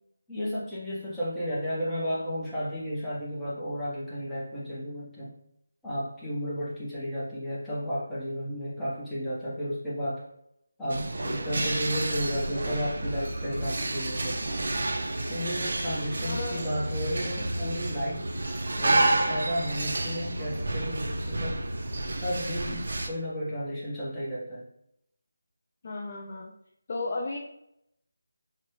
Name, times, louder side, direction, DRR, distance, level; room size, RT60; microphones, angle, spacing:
voice 1, 0.3-5.3 5.8-10.2 10.8-14.6 15.3-18.2 18.8-21.6 22.2-24.6, equal, 5° left, -11 dB, 0.7 m, -33 dB
sound 1, 10.9-23.1, right 2 dB, 55° right, 0.4 m, -30 dB
voice 2, 16.3-16.8 25.8-26.5 26.9-27.4, left 2 dB, 40° left, -1 dB, 0.3 m, -34 dB
2.5 x 2.0 x 2.9 m, 0.78 s
figure-of-eight pair, 160°, 0 cm